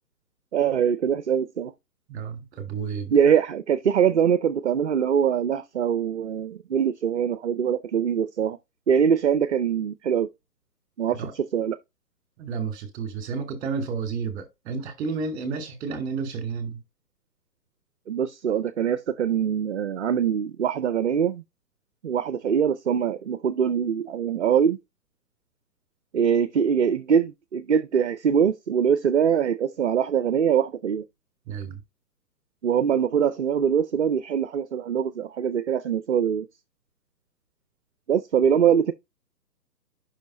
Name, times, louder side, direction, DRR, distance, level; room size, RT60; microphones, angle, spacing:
voice 1, 0.5-1.7 3.1-8.6 8.9-10.3 11.0-11.8 18.1-21.4 22.0-24.8 26.1-31.0 32.6-36.5 38.1-38.9, right 8 dB, 45° right, 0.5 m, -23 dB
voice 2, 2.1-3.2 11.1-11.3 12.4-16.8 31.5-31.8, right 5 dB, 15° right, 2.1 m, -31 dB
5.6 x 5.1 x 4.1 m
figure-of-eight pair, 140°, 49 cm